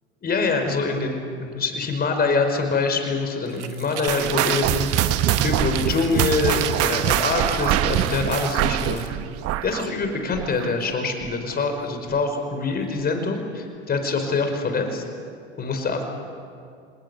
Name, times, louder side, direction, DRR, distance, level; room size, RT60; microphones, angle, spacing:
voice 1, 0.2-9.1 9.6-15.0 15.6-16.1, left 4 dB, 25° left, 5 dB, 5.1 m, -25 dB
sound 1, 3.5-9.1, right 11 dB, 85° right, 1.4 m, -36 dB
sound 2, 4.1-10.9 11.2-11.5 12.1-12.2 13.0-13.1, right 12 dB, 45° right, 1.1 m, -24 dB
26.5 x 20.0 x 8.2 m, 2.3 s
hypercardioid pair, 95°, 34 cm